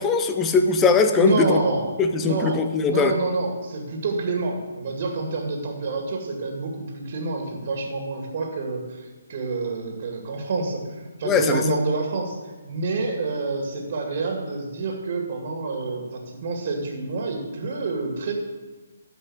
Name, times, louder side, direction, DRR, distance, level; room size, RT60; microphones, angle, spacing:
voice 1, 0.0-1.6 2.0-3.2 11.2-11.8, left 4 dB, 15° left, 7 dB, 0.8 m, -20 dB
voice 2, 1.2-1.9 2.2-12.4 12.6-18.3, right 3 dB, 45° right, 2 dB, 2.2 m, -28 dB
12.5 x 5.4 x 7.3 m, 1.3 s
figure-of-eight pair, 145°, 0 cm